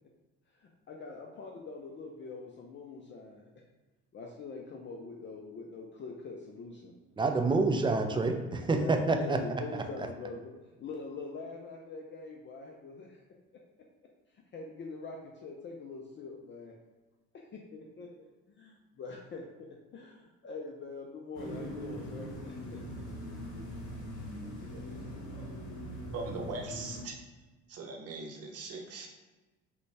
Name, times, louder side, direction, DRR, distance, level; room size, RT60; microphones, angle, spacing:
voice 1, 0.5-3.5 4.1-6.9 8.6-10.5 10.8-13.2 14.5-16.7 17.3-22.8, left 4 dB, 35° left, -1 dB, 0.5 m, -44 dB
voice 2, 7.2-9.4, right 3 dB, 15° right, 5 dB, 0.4 m, -27 dB
sound 1, 21.3-27.0, equal, 60° left, 1.0 m, -41 dB
voice 3, 24.7-25.6 26.1-27.2 27.7-29.1, right 3 dB, 45° right, 1 dB, 0.8 m, -41 dB
3.9 x 2.3 x 3.2 m, 1.2 s
hypercardioid pair, 60°, 33 cm